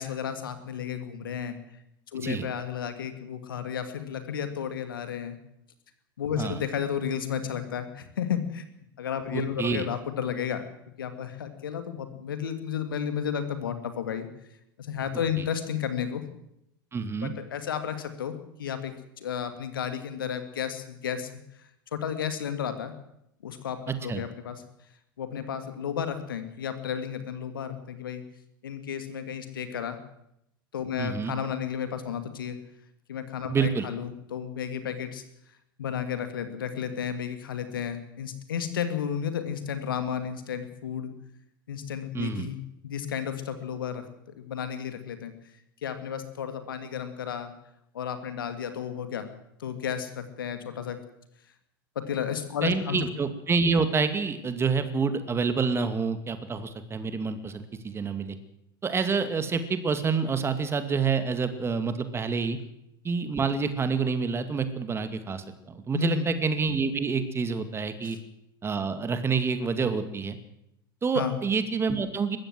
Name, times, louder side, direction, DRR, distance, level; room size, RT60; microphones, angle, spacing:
voice 1, 0.0-1.6 2.1-5.4 6.2-8.6 9.0-10.7 11.0-14.3 14.8-16.3 17.2-21.3 21.9-22.9 23.4-24.6 25.2-28.2 28.6-30.0 30.7-32.6 33.1-35.2 35.8-41.1 41.7-44.1 44.4-45.3 45.8-47.5 47.9-49.3 49.6-51.0 52.0-53.1 65.9-66.3 68.0-68.2 71.1-71.4, left 8 dB, 70° left, 9 dB, 2.3 m, -32 dB
voice 2, 2.2-2.5 6.4-6.6 9.3-9.8 16.9-17.3 23.9-24.2 31.0-31.3 33.5-33.9 42.1-42.5 52.6-58.4 58.8-62.6 63.0-68.2 68.6-70.4 71.0-72.4, right 5 dB, 20° right, 10 dB, 2.3 m, -27 dB
21.5 x 15.5 x 7.7 m, 0.82 s
figure-of-eight pair, 80°, 12 cm